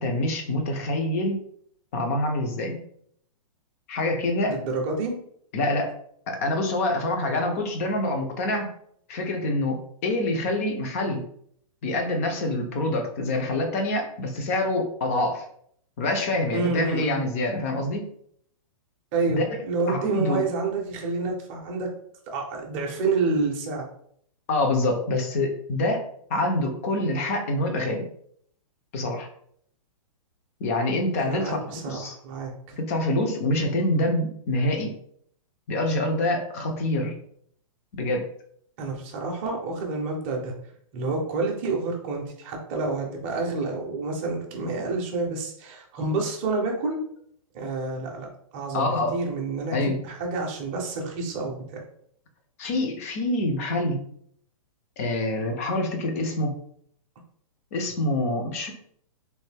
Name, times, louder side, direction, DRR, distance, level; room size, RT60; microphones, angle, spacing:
voice 1, 0.0-1.4 1.9-2.8 3.9-4.6 5.5-5.9 6.3-8.7 9.1-11.2 11.8-15.4 16.0-18.0 19.3-19.6 19.9-20.5 24.5-28.1 28.9-29.3 30.6-32.1 32.7-35.0 35.7-37.1 37.9-38.3 48.7-49.2 49.7-50.0 52.6-54.0 55.0-56.6 57.7-58.7, left 1 dB, 25° left, 4 dB, 0.4 m, -26 dB
voice 2, 4.5-5.1 16.5-17.3 19.1-21.9 22.3-23.8 31.2-32.8 38.8-40.5 40.9-47.0 47.5-51.8, right 3 dB, 20° right, 0 dB, 0.6 m, -28 dB
3.1 x 2.5 x 3.3 m, 0.65 s
hypercardioid pair, 170°, 18 cm